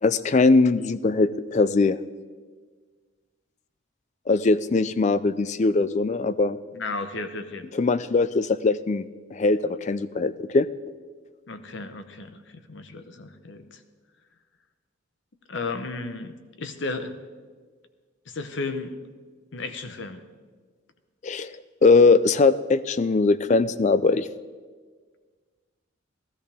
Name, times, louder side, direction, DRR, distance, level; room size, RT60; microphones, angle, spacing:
voice 1, 0.0-2.0 4.3-6.6 7.7-9.0 9.3-10.7 21.2-21.6 21.8-24.3, left 3 dB, 35° left, 15 dB, 0.3 m, -21 dB
voice 2, 6.7-7.6 11.5-13.8 15.5-17.1 18.3-19.0 19.5-20.2, left 3 dB, 60° left, 9 dB, 0.8 m, -34 dB
15.5 x 14.0 x 3.5 m, 1.5 s
head